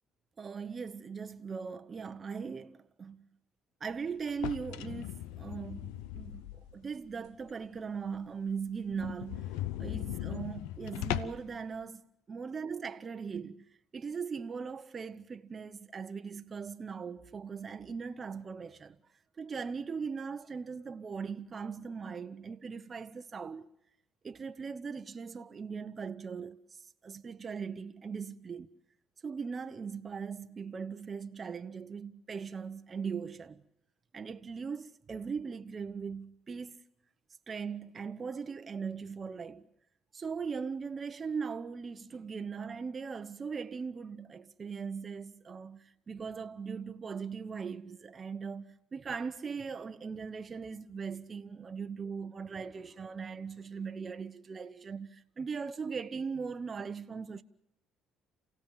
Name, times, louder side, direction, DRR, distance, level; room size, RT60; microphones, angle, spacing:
voice 1, 0.4-3.2 3.8-9.5 9.8-13.6 13.9-19.0 19.4-23.7 24.2-28.7 29.2-33.6 34.1-36.8 37.5-39.6 40.1-57.4, right 5 dB, 35° right, 1.0 m, -39 dB
sound 1, 4.3-6.8 7.3-7.4 7.8-7.9 8.1-8.2 8.5-8.6 8.9-11.5, left 14 dB, 90° left, 0.8 m, -38 dB
28.5 x 16.5 x 7.3 m
supercardioid pair, 80°, 0 cm